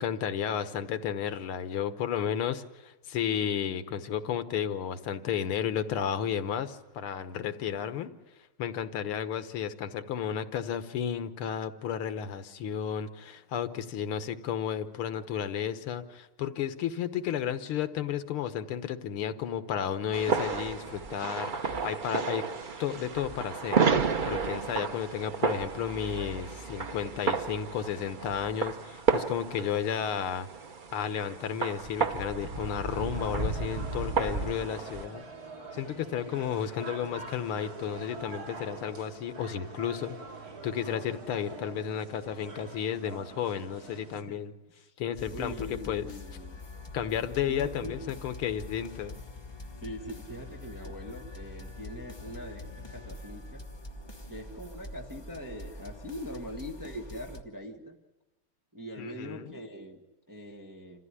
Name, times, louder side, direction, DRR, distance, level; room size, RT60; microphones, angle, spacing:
voice 1, 0.0-8.1 8.6-22.4 22.8-23.8 24.3-30.5 30.9-35.2 35.7-40.2 40.6-44.5 45.0-46.1 46.9-49.2 59.0-59.6, left 8 dB, 85° left, 10 dB, 2.0 m, -33 dB
sound 1, 20.1-35.1, right 5 dB, 70° right, 0.4 m, -32 dB
sound 2, 32.9-44.2, right 3 dB, 45° right, 2.7 m, -45 dB
sound 3, 45.2-57.4, left 2 dB, 15° left, 0.9 m, -44 dB
voice 2, 45.3-46.6 47.5-48.0 49.8-53.6 54.3-58.0 58.7-61.1, equal, 10° right, 1 dB, 1.4 m, -42 dB
27.5 x 15.0 x 9.8 m, 1.1 s
omnidirectional pair, 2.3 m